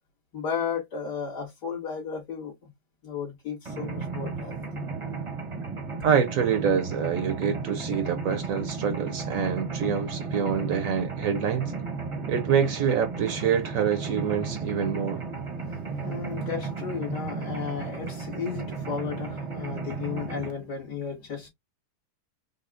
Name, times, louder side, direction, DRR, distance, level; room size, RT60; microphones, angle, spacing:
voice 1, 0.3-2.7 3.0-4.6 15.6-21.5, left 7 dB, 80° left, 2.7 m, -34 dB
Mechanisms, 3.7-20.5, right 4 dB, 30° right, 0.6 m, -34 dB
voice 2, 6.0-11.7 12.3-15.2, right 7 dB, 65° right, 0.9 m, -26 dB
5.4 x 2.0 x 2.5 m
omnidirectional pair, 1.8 m